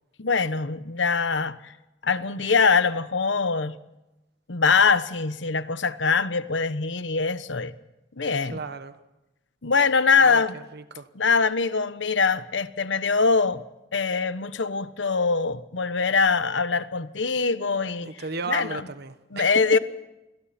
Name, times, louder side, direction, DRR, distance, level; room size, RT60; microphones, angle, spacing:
voice 1, 0.2-1.7 2.0-3.7 4.5-7.7 8.2-8.6 9.6-10.5 11.1-13.6 13.9-18.1 18.5-18.8 19.3-19.8, left 5 dB, 70° left, 13 dB, 1.1 m, -23 dB
voice 2, 8.4-9.0 10.2-11.1 18.0-19.8, right 4 dB, 60° right, 11 dB, 1.3 m, -35 dB
29.5 x 22.0 x 4.4 m, 0.97 s
head